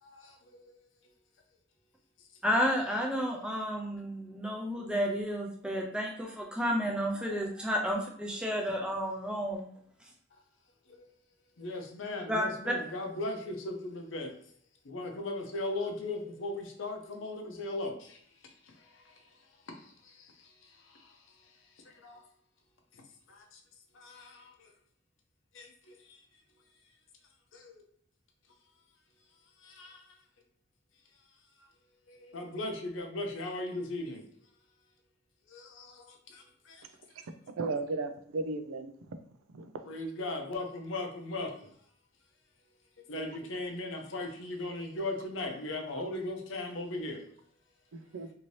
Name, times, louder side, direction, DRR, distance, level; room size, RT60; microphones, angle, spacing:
voice 1, 0.0-0.8 10.9-11.1 11.6-14.3 14.8-19.4 19.7-21.5 21.8-22.2 22.9-23.0 23.3-23.6 23.9-24.7 25.5-26.2 27.5-27.8 29.6-30.2 31.6-31.7 32.1-34.2 35.5-36.9 39.9-41.7 43.1-47.3, left 2 dB, 70° left, 0.6 m, -39 dB
voice 2, 2.4-9.7 12.3-12.7, equal, 5° right, 0.4 m, -31 dB
voice 3, 37.6-38.9 39.5-39.8 43.2-43.4 47.9-48.3, right 3 dB, 90° right, 0.4 m, -35 dB
2.7 x 2.7 x 3.1 m
head